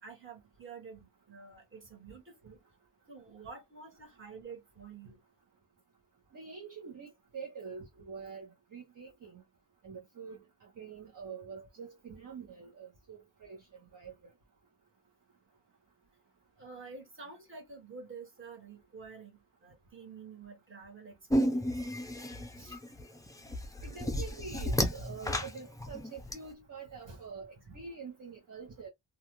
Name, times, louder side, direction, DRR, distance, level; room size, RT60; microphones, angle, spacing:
voice 1, 0.0-2.6 3.1-5.2 16.6-21.7 22.6-22.8, right 5 dB, 25° right, 1.4 m, -49 dB
voice 2, 6.3-9.4 9.8-13.6 13.9-14.1 23.8-28.9, right 5 dB, 45° right, 0.9 m, -46 dB
sound 1, 21.3-26.3, equal, 10° left, 0.5 m, -32 dB
2.4 x 2.4 x 2.9 m
wide cardioid pair, 120°, 46 cm